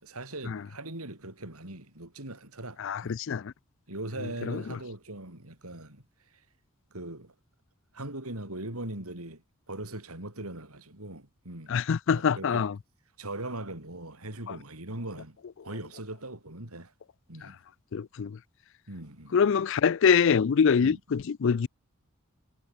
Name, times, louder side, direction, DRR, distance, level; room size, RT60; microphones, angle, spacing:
voice 1, 0.0-3.2 3.9-6.0 6.9-7.3 7.9-11.7 12.1-12.6 13.2-15.4 15.6-16.9 17.3-17.6 18.9-19.5 20.8-21.0, right 1 dB, 90° right, 6.2 m, -40 dB
voice 2, 2.8-3.5 4.5-4.6 11.7-12.7 14.5-14.6 17.9-18.4 19.3-21.7, left 6 dB, 60° left, 0.4 m, -24 dB
head